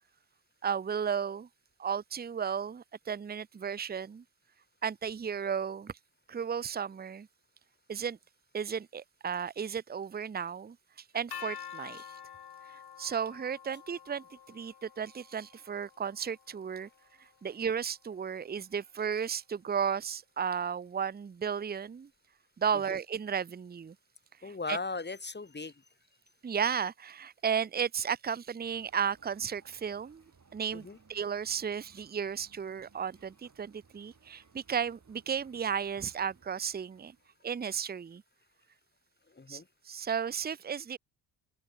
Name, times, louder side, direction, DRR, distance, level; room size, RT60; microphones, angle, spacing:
voice 1, 0.6-1.5 1.8-4.2 4.8-5.9 6.3-7.3 7.9-8.2 8.5-10.8 11.1-12.2 13.0-16.9 17.4-22.1 22.6-23.9 24.7-24.8 26.4-30.2 30.5-37.1 37.4-38.2 39.5-41.0, right 7 dB, 20° right, 0.8 m, -34 dB
sound 1, 11.3-17.2, left 9 dB, 50° left, 3.2 m, -48 dB
voice 2, 24.4-25.8 30.7-31.0 39.3-39.7, left 3 dB, 20° left, 2.3 m, -38 dB
sound 2, 28.6-37.4, right 5 dB, 35° right, 5.2 m, -63 dB
open air
hypercardioid pair, 40°, 48 cm